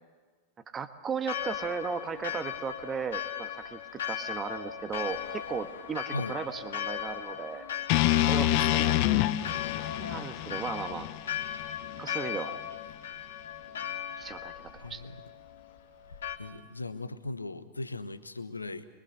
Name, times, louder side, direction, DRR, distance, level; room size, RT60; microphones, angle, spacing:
voice 1, 0.7-7.6 8.3-8.9 10.0-11.1 12.0-12.6 14.2-15.0, right 6 dB, 20° right, 10 dB, 1.4 m, -36 dB
Church bell, 1.2-16.4, left 9 dB, 65° left, 2.2 m, -38 dB
sound 1, 7.9-12.0, left 15 dB, 45° left, 0.8 m, -27 dB
voice 2, 8.1-9.0 9.6-9.8 14.8-15.2 16.4-18.9, left 2 dB, 80° left, 11 dB, 1.1 m, -38 dB
24.5 x 23.0 x 6.6 m, 1.4 s
figure-of-eight pair, 90°, 0 cm